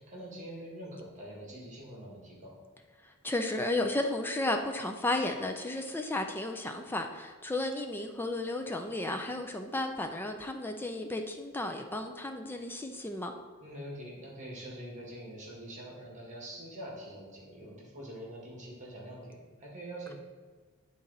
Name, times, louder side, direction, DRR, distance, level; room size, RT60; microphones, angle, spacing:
voice 1, 0.0-2.6 13.6-20.1, right 1 dB, 35° right, -3 dB, 1.5 m, -44 dB
voice 2, 3.0-13.3, left 2 dB, 10° left, 5 dB, 0.3 m, -33 dB
9.8 x 3.9 x 4.0 m, 1.5 s
head